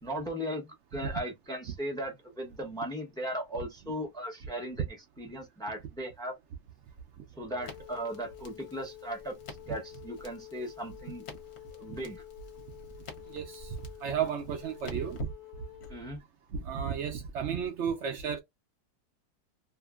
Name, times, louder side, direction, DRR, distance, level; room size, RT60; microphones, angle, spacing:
voice 1, 0.0-4.8 5.2-6.3 7.3-9.4 9.7-11.3 11.7-12.2 15.9-16.2, equal, 5° left, 0.4 m, -37 dB
Wind instrument woodwind instrument, 7.5-16.0, left 17 dB, 75° left, 1.0 m, -49 dB
Crackle, 7.6-15.9, left 2 dB, 50° left, 1.0 m, -48 dB
voice 2, 13.3-13.8 14.0-15.3 16.5-18.4, right 7 dB, 70° right, 0.6 m, -33 dB
2.7 x 2.5 x 2.3 m
omnidirectional pair, 1.7 m